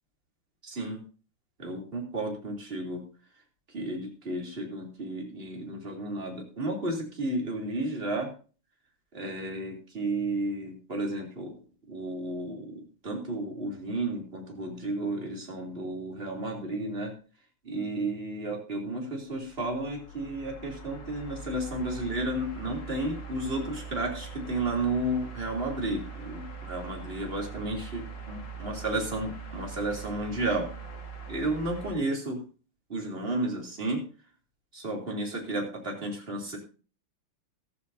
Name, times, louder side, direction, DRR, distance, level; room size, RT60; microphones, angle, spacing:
voice 1, 0.6-1.0 1.6-3.0 3.7-8.3 9.1-11.5 11.9-17.1 17.6-30.7 31.3-32.4 32.9-34.0 34.7-36.6, right 2 dB, 25° right, 0 dB, 3.4 m, -32 dB
sound 1, 19.3-31.9, right 4 dB, 55° left, 2.7 m, -42 dB
14.5 x 14.0 x 2.7 m, 0.37 s
omnidirectional pair, 2.4 m